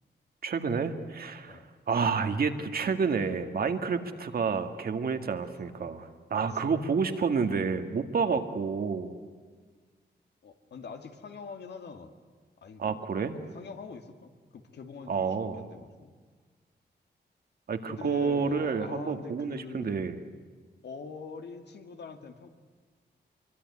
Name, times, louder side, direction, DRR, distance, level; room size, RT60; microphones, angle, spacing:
voice 1, 0.4-1.6 1.9-9.2 12.8-13.3 15.1-15.6 17.7-20.2, right 5 dB, 60° right, 7 dB, 1.9 m, -29 dB
voice 2, 10.4-12.1 12.6-13.0 13.3-16.1 17.9-20.1 20.8-22.5, left 4 dB, 75° left, 6 dB, 2.1 m, -44 dB
26.0 x 23.5 x 9.8 m, 1.5 s
wide cardioid pair, 160°, 18 cm